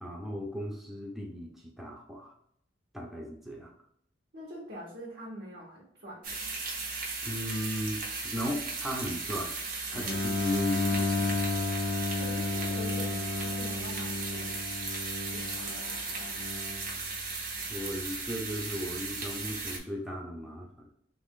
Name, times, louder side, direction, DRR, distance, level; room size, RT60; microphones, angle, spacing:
voice 1, 0.0-2.3 2.9-3.7 7.2-9.5 9.9-11.4 17.7-20.9, equal, ahead, -2 dB, 0.6 m, -37 dB
voice 2, 4.3-6.5 12.1-14.6 15.3-16.1, equal, 65° right, -6 dB, 1.1 m, -44 dB
sound 1, 6.2-19.8, right 3 dB, 50° right, 0.8 m, -36 dB
Bowed string instrument, 9.9-16.9, left 3 dB, 65° left, 0.5 m, -32 dB
3.0 x 2.5 x 3.6 m, 0.70 s
head